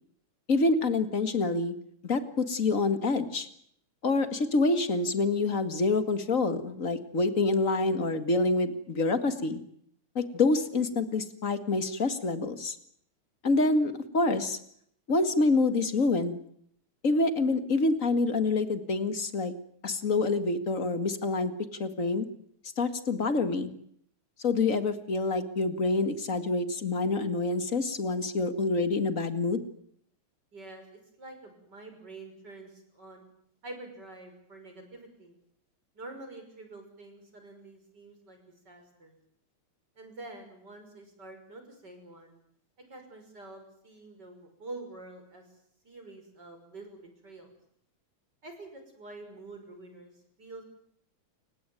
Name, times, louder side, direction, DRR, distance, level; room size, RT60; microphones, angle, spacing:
voice 1, 0.5-1.8 2.0-3.5 4.0-9.6 10.2-12.8 13.4-14.6 15.1-16.4 17.0-19.5 19.8-21.5 21.8-22.3 22.8-23.7 24.4-29.6, left 3 dB, 30° left, 10 dB, 2.0 m, -27 dB
voice 2, 30.5-33.3 33.6-35.3 35.9-38.4 38.6-39.2 40.0-42.4 42.9-45.5 45.8-47.5 48.4-50.6, right 2 dB, 35° right, 5 dB, 6.6 m, -47 dB
29.5 x 17.0 x 9.3 m, 0.68 s
omnidirectional pair, 3.3 m